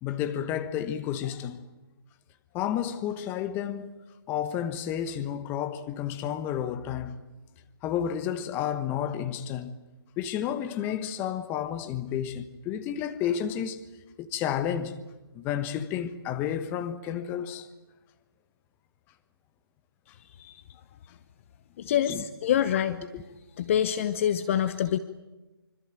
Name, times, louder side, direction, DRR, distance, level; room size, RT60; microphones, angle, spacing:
voice 1, 0.0-1.6 2.5-3.9 4.3-7.2 7.8-9.7 10.2-13.8 14.2-15.0 15.3-17.7 20.4-20.6 21.8-22.2 22.7-22.8 23.1-23.2, left 9 dB, 15° left, 1.2 m, -31 dB
voice 2, 21.8-23.0 23.6-25.0, left 10 dB, 30° left, 0.9 m, -26 dB
25.5 x 25.5 x 9.0 m
figure-of-eight pair, 145°, 13 cm